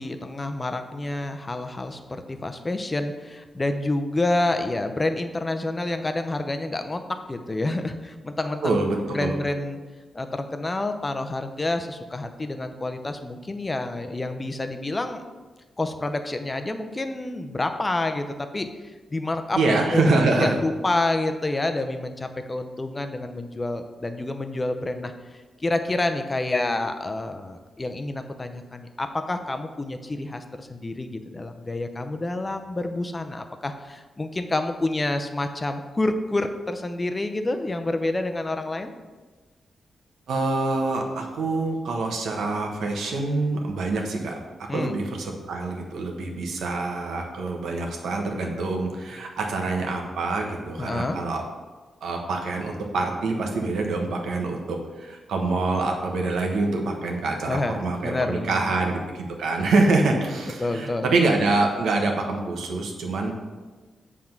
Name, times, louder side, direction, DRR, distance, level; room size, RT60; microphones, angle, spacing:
voice 1, 0.0-8.9 9.1-9.8 10.1-15.2 15.8-19.6 19.9-38.9 44.7-45.0 50.8-51.2 57.5-58.6 60.6-61.1, left 2 dB, 25° left, 7 dB, 0.6 m, -28 dB
voice 2, 8.6-9.3 19.5-20.6 40.3-44.3 44.7-51.4 52.0-63.3, right 3 dB, 90° right, 2 dB, 1.1 m, -25 dB
7.6 x 3.7 x 5.9 m, 1.3 s
cardioid pair, 100°, 0 cm